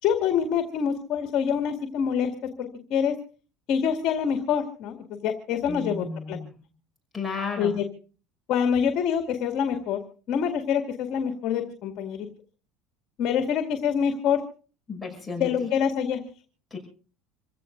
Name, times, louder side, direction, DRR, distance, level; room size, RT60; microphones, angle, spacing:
voice 1, 0.0-2.3 2.6-3.1 3.7-6.4 7.6-7.9 8.5-10.0 10.3-12.3 13.2-14.4 15.4-16.2, left 7 dB, 50° left, 5 dB, 2.3 m, -26 dB
voice 2, 5.7-6.5 7.1-7.7 14.9-15.7 16.7-16.8, left 4 dB, 5° left, -2 dB, 5.9 m, -33 dB
27.5 x 16.0 x 2.6 m, 0.39 s
cardioid pair, 140°, 0 cm